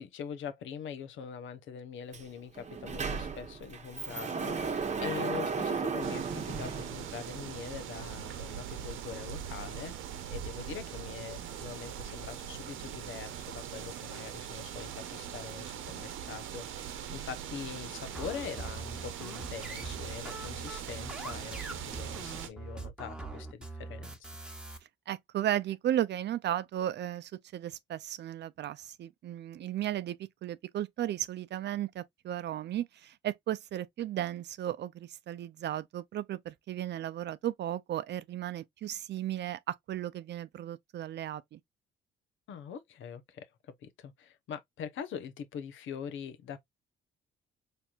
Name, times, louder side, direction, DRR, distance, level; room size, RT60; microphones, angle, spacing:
voice 1, 0.0-10.0 10.3-24.3 42.5-46.6, left 7 dB, 75° left, 1.0 m, -43 dB
Sliding door, 2.1-2.2 2.5-7.5, right 5 dB, 35° right, 1.0 m, -35 dB
sound 1, 6.0-22.5, right 9 dB, 85° right, 0.9 m, -41 dB
sound 2, 18.1-24.8, right 3 dB, 5° right, 1.2 m, -42 dB
voice 2, 25.1-30.2 30.4-41.6, right 12 dB, 60° right, 0.5 m, -35 dB
4.4 x 3.4 x 2.4 m
cardioid pair, 90°, 20 cm